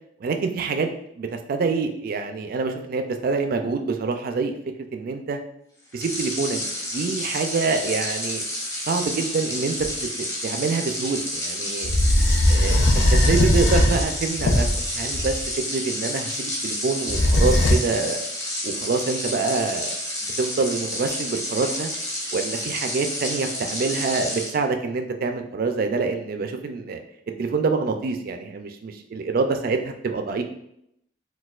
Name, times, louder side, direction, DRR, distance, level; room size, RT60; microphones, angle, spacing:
voice 1, 0.2-4.5 4.9-5.4 5.9-6.6 6.9-8.4 8.9-9.7 10.4-11.9 12.5-14.7 14.9-15.3 15.7-18.2 18.6-19.9 20.4-21.9 22.3-27.0 27.4-30.4, right 4 dB, 50° right, 6 dB, 0.3 m, -26 dB
sound 1, 5.9-24.5, left 1 dB, 15° left, 0.5 m, -30 dB
sound 2, 9.9-10.0 11.8-15.5 17.1-17.8, left 1 dB, 85° left, 0.5 m, -19 dB
4.1 x 2.3 x 2.4 m, 0.76 s
head